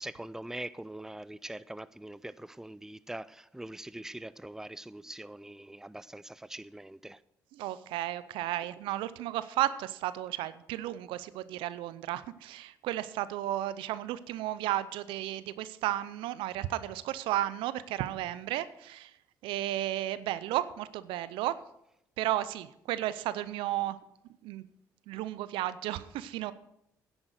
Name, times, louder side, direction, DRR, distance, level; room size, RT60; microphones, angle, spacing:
voice 1, 0.0-7.2, right 1 dB, 5° right, 0.5 m, -43 dB
voice 2, 7.6-19.1 19.4-21.6 22.2-24.0 24.4-24.6 25.1-26.5, right 14 dB, 75° right, 0.6 m, -33 dB
9.9 x 8.8 x 6.5 m
hypercardioid pair, 55°, 9 cm